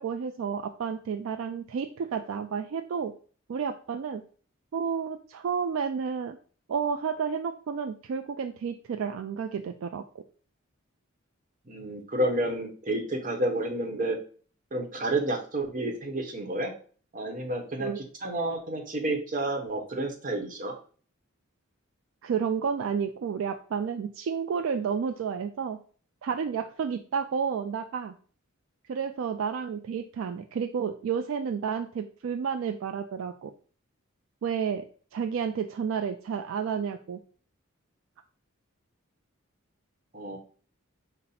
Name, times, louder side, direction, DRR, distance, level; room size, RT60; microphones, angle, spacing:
voice 1, 0.0-3.1 3.5-4.2 4.7-6.4 6.7-10.0 17.8-18.0 22.2-25.8 26.2-28.1 28.9-33.5 34.4-34.8 35.1-37.2, right 6 dB, 65° right, 7 dB, 0.3 m, -31 dB
voice 2, 11.6-14.2 14.7-16.7 17.1-20.7 40.1-40.4, right 1 dB, 40° right, 3 dB, 0.9 m, -30 dB
5.4 x 2.1 x 4.1 m, 0.42 s
head